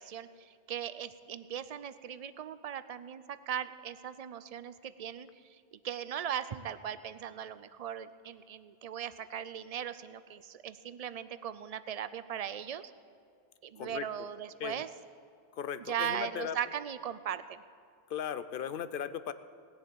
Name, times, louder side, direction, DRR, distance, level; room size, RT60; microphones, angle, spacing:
voice 1, 0.0-12.9 13.6-14.9 15.8-17.6, right 9 dB, 45° right, 14 dB, 0.5 m, -39 dB
voice 2, 13.8-14.3 14.6-14.8 15.5-16.6 18.1-19.3, left 8 dB, 60° left, 13 dB, 0.8 m, -37 dB
19.0 x 7.4 x 8.5 m, 2.3 s
omnidirectional pair, 1.1 m